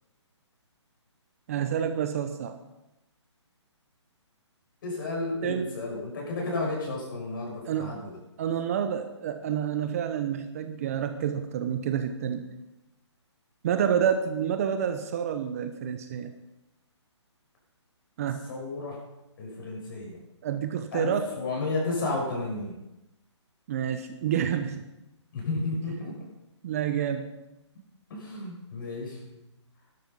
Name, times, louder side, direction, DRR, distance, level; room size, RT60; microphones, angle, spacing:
voice 1, 1.5-2.6 5.4-5.7 7.7-8.0 8.4-12.4 13.6-16.3 18.2-18.5 20.4-21.3 23.7-24.8 26.6-27.3, right 8 dB, 30° right, 8 dB, 0.8 m, -28 dB
voice 2, 4.8-8.2 18.5-19.0 19.4-20.2 20.9-22.8 25.3-26.1 28.1-29.4, left 2 dB, 45° left, -2 dB, 6.5 m, -32 dB
13.5 x 12.0 x 5.4 m, 0.93 s
hypercardioid pair, 160°, 15 cm